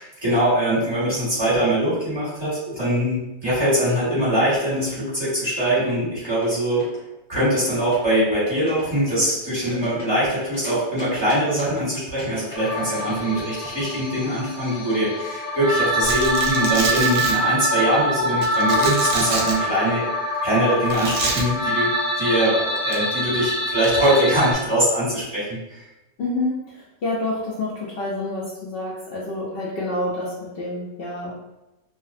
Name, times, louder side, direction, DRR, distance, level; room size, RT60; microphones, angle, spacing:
voice 1, 0.0-6.8 7.3-20.1 20.4-25.8, right 1 dB, 20° right, -11 dB, 1.2 m, -22 dB
sound 1, 6.3-7.0 7.4-8.1 8.5-8.8 9.1-10.7 11.0-11.8 12.2-15.2, left 1 dB, 50° left, 0.9 m, -43 dB
sound 2, 12.6-24.6, equal, 90° left, 1.1 m, -25 dB
Domestic sounds home sounds, 16.0-17.3 18.4-19.5 20.9-21.4 22.8-23.0 23.8-24.2, right 3 dB, 70° right, 0.9 m, -27 dB
voice 2, 26.2-31.5, left 2 dB, 70° left, -5 dB, 0.5 m, -28 dB
2.5 x 2.0 x 2.4 m, 0.96 s
omnidirectional pair, 1.5 m